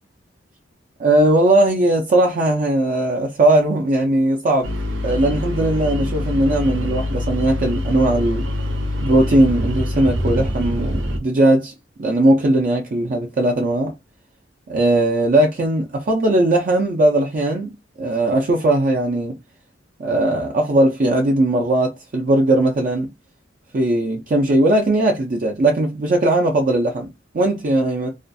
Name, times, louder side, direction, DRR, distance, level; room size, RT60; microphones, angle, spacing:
voice 1, 1.0-4.7 5.0-8.4 9.0-11.7 12.0-13.9 14.7-19.4 20.0-23.1 23.7-27.1 27.3-28.1, right 1 dB, 45° right, 0.4 m, -18 dB
sound 1, 4.6-11.2, left 1 dB, 85° right, 0.6 m, -24 dB
2.4 x 2.2 x 2.5 m
head